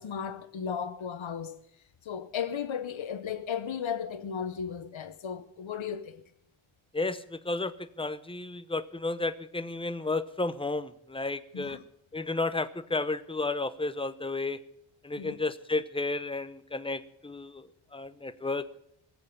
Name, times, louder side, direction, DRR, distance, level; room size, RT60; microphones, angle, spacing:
voice 1, 0.0-1.6 2.0-6.2 11.5-11.8 15.2-15.4, left 7 dB, 65° left, 0.9 m, -35 dB
voice 2, 6.9-11.8 12.1-14.6 15.0-18.7, left 3 dB, 10° left, 0.7 m, -32 dB
19.5 x 7.8 x 8.5 m
wide cardioid pair, 105°, 50 cm